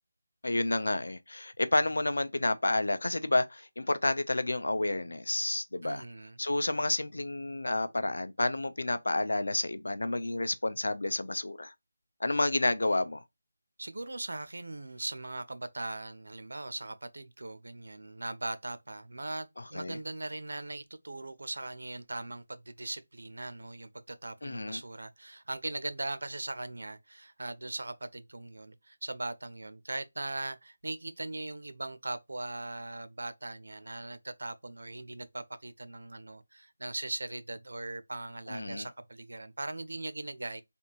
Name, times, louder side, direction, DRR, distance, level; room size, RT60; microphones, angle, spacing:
voice 1, 0.4-6.0 6.4-11.7 12.2-13.2 19.7-20.0 24.4-24.8 38.5-38.9, left 2 dB, 80° left, 0.6 m, -30 dB
voice 2, 5.8-6.4 13.8-40.6, right 2 dB, 75° right, 0.6 m, -40 dB
3.4 x 2.5 x 2.9 m
figure-of-eight pair, 175°, 0 cm